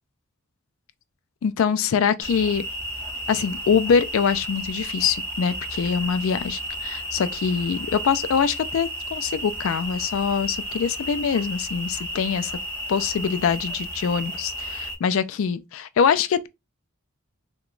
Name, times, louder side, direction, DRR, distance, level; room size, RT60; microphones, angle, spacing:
voice 1, 1.4-2.6 3.3-12.5 12.9-16.5, left 6 dB, 70° left, 0.3 m, -24 dB
sound 1, 2.2-14.9, equal, 10° left, 0.8 m, -33 dB
2.9 x 2.2 x 3.7 m
head